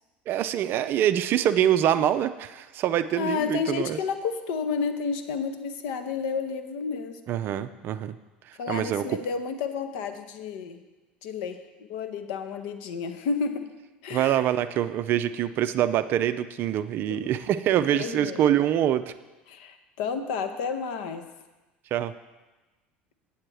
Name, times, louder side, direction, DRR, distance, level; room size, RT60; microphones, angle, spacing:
voice 1, 0.3-4.0 7.3-8.1 8.5-9.2 14.1-19.1 21.9-22.1, right 11 dB, 40° right, 12 dB, 0.4 m, -25 dB
voice 2, 3.2-7.2 8.6-10.8 11.2-11.6 11.9-13.7 14.0-14.4 17.1-17.2 17.9-18.4 19.5-21.2, left 5 dB, 60° left, 9 dB, 0.7 m, -31 dB
8.6 x 7.2 x 4.6 m, 1.1 s
figure-of-eight pair, 70°, 5 cm